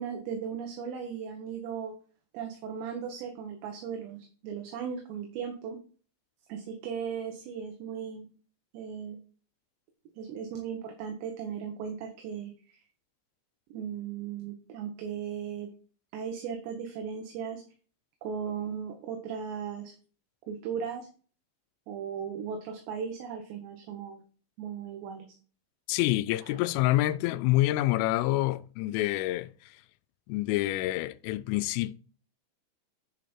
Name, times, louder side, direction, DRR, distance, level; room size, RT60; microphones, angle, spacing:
voice 1, 0.0-1.9 2.3-4.2 4.4-5.8 6.5-8.3 8.7-9.2 10.2-12.8 13.7-15.7 16.1-17.6 18.2-19.9 20.5-21.1 21.9-24.2 24.6-25.3 26.4-26.6, right 7 dB, 70° right, 3.0 m, -37 dB
voice 2, 25.9-29.5 30.3-32.0, left 16 dB, 90° left, 3.1 m, -27 dB
10.0 x 5.1 x 4.4 m
omnidirectional pair, 5.7 m